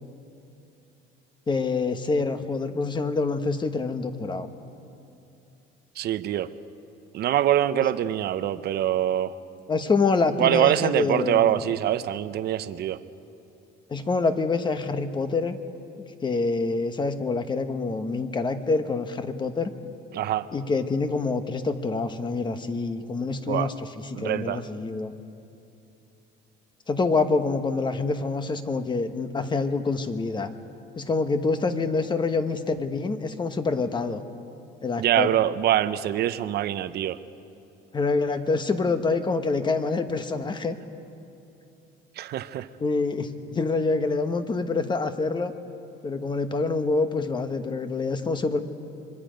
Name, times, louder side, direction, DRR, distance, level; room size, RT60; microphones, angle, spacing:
voice 1, 1.5-4.5 9.7-11.7 13.9-15.6 16.2-19.7 20.5-23.9 24.2-25.1 26.9-30.5 31.0-34.2 34.8-35.3 37.9-40.8 42.8-45.5 46.0-48.6, left 3 dB, 25° left, 8 dB, 1.1 m, -26 dB
voice 2, 6.0-6.5 7.1-9.4 10.4-13.0 20.1-20.5 23.5-23.7 24.2-24.6 35.0-37.2 42.2-42.7, right 12 dB, 55° right, 13 dB, 0.8 m, -24 dB
25.5 x 23.0 x 5.2 m, 2.7 s
cardioid pair, 125°, 20 cm